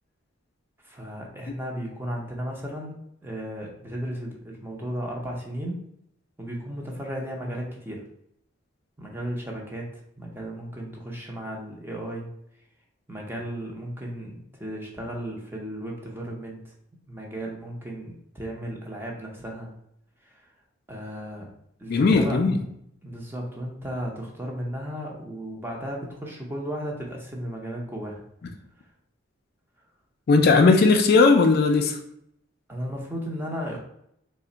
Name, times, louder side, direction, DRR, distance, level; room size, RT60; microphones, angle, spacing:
voice 1, 0.8-5.8 6.4-8.0 9.0-9.9 10.2-12.3 13.1-16.7 17.1-19.7 20.2-20.4 20.9-21.5 21.8-22.4 23.0-28.2 32.7-33.8, equal, 10° right, -1 dB, 0.6 m, -35 dB
voice 2, 21.9-22.6 30.3-32.0, left 4 dB, 50° left, 5 dB, 0.3 m, -17 dB
3.3 x 2.1 x 3.8 m, 0.72 s
head